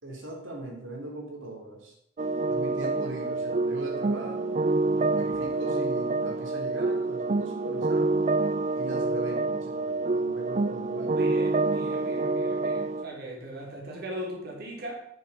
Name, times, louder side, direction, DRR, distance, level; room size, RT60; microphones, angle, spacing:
voice 1, 0.0-1.9 2.5-8.3 8.7-11.4, right 1 dB, 90° right, -1 dB, 3.4 m, -40 dB
sound 1, 2.2-13.0, right 3 dB, 35° right, 0.4 m, -27 dB
voice 2, 11.2-15.0, right 1 dB, 55° right, -2 dB, 3.7 m, -39 dB
12.5 x 7.0 x 6.6 m, 0.73 s
head